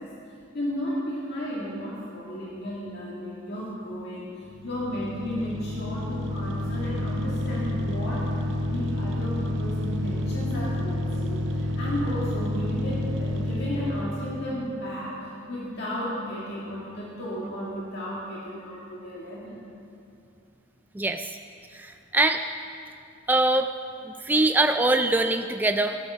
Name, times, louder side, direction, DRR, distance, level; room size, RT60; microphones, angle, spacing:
voice 1, 0.0-19.6, equal, 55° left, -6 dB, 2.3 m, -34 dB
sound 1, 4.5-14.3, left 1 dB, 65° right, 0.9 m, -29 dB
voice 2, 20.9-21.4 21.7-22.4 23.3-23.7 24.1-26.0, right 2 dB, 10° right, 6 dB, 0.3 m, -23 dB
15.5 x 12.0 x 6.4 m, 2.5 s
head